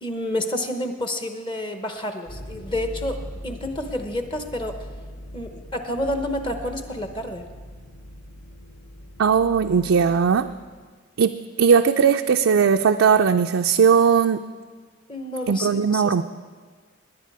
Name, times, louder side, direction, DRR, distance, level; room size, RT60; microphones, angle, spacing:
voice 1, 0.0-4.9 5.3-7.4 15.1-16.2, left 1 dB, 25° left, 6 dB, 0.9 m, -29 dB
sound 1, 2.3-10.8, equal, 50° left, 1.6 m, -40 dB
voice 2, 9.2-10.5 11.2-14.4 15.5-16.2, right 6 dB, 70° right, 5 dB, 0.4 m, -18 dB
19.0 x 9.9 x 4.7 m, 1.5 s
head